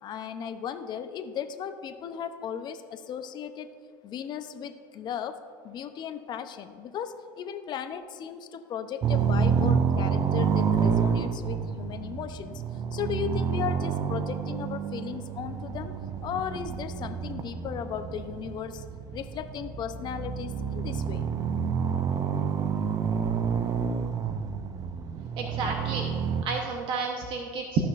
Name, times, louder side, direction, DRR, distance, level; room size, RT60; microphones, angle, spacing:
voice 1, 0.0-3.7 4.0-5.4 5.6-12.6 12.9-15.9 16.2-18.8 19.1-21.2, left 8 dB, 45° left, 9 dB, 0.7 m, -36 dB
sound 1, 9.0-26.4, right 6 dB, 35° right, 0.6 m, -29 dB
voice 2, 25.4-26.0 26.4-27.9, right 4 dB, 55° right, 1 dB, 1.0 m, -30 dB
14.5 x 5.9 x 2.6 m, 2.1 s
supercardioid pair, 95°, 11 cm